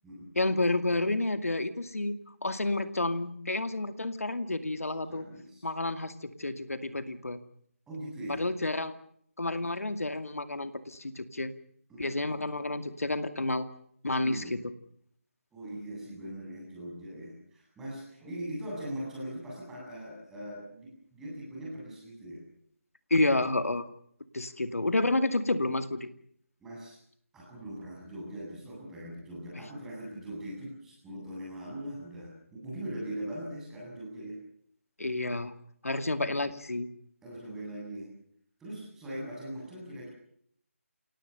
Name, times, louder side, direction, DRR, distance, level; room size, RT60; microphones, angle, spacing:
voice 1, 0.4-5.3 5.6-7.4 8.3-8.9 9.4-11.5 12.0-13.7 14.0-14.7 23.1-23.9 24.3-26.1 35.0-35.5 35.8-36.9, left 2 dB, 85° left, 10 dB, 2.3 m, -30 dB
voice 2, 5.1-5.7 7.9-8.4 11.9-12.4 14.2-14.6 15.5-22.4 26.6-27.0 27.3-34.4 37.2-38.1 38.6-40.1, right 1 dB, 5° right, -4 dB, 7.8 m, -41 dB
29.5 x 18.0 x 6.8 m, 0.66 s
figure-of-eight pair, 165°, 8 cm